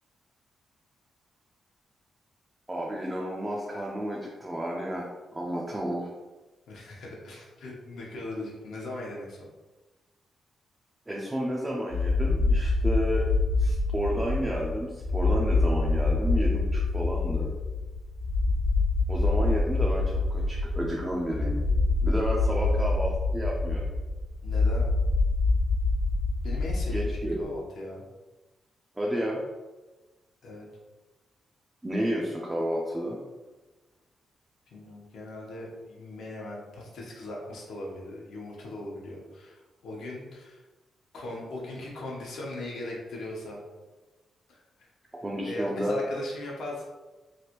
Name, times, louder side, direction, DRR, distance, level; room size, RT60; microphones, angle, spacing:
voice 1, 2.7-6.1 11.1-13.3 13.6-17.5 19.1-21.6 22.0-23.9 26.9-27.5 29.0-29.4 31.8-33.2 45.2-46.0, equal, 15° right, -3 dB, 0.4 m, -31 dB
voice 2, 6.7-9.4 22.3-22.7 24.4-24.9 26.4-28.1 30.4-30.7 34.7-40.6 41.1-43.6 44.5-44.9 45.4-46.9, left 1 dB, 75° left, -3 dB, 0.9 m, -39 dB
sound 1, 11.9-27.4, left 3 dB, 70° right, 0.9 m, -26 dB
3.2 x 2.5 x 2.9 m, 1.2 s
wide cardioid pair, 165°, 0 cm